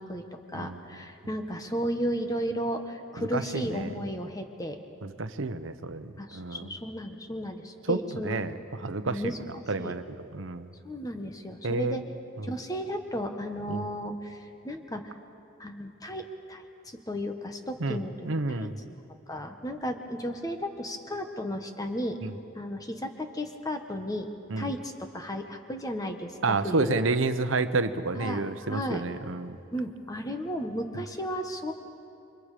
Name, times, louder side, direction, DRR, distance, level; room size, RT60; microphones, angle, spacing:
voice 1, 0.0-4.8 6.2-8.4 9.0-9.4 9.8-10.0 10.8-12.0 12.4-15.1 15.6-16.6 17.1-18.1 18.5-19.0 19.3-22.2 22.5-24.3 24.6-27.0 28.2-29.0 29.7-31.7, equal, 20° left, 5 dB, 1.4 m, -34 dB
voice 2, 3.3-3.9 5.0-6.7 7.9-9.3 9.7-10.7 11.6-12.0 13.7-13.8 17.8-18.0 18.2-18.8 22.2-22.3 24.5-24.7 26.4-29.6, right 3 dB, 85° right, 10 dB, 0.9 m, -30 dB
29.0 x 24.5 x 5.0 m, 2.7 s
head